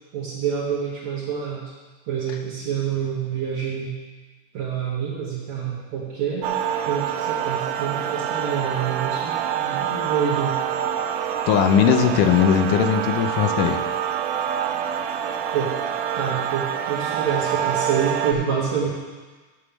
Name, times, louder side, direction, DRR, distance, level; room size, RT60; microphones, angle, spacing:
voice 1, 0.1-1.7 2.1-4.0 4.5-6.5 6.8-10.6 15.5-15.7 16.1-18.9, right 7 dB, 65° right, -6 dB, 2.3 m, -27 dB
sound 1, 6.4-18.3, right 9 dB, 80° right, 2.0 m, -26 dB
voice 2, 11.5-13.8, left 8 dB, 85° left, 7 dB, 2.2 m, -19 dB
7.2 x 6.7 x 7.1 m, 1.3 s
omnidirectional pair, 3.7 m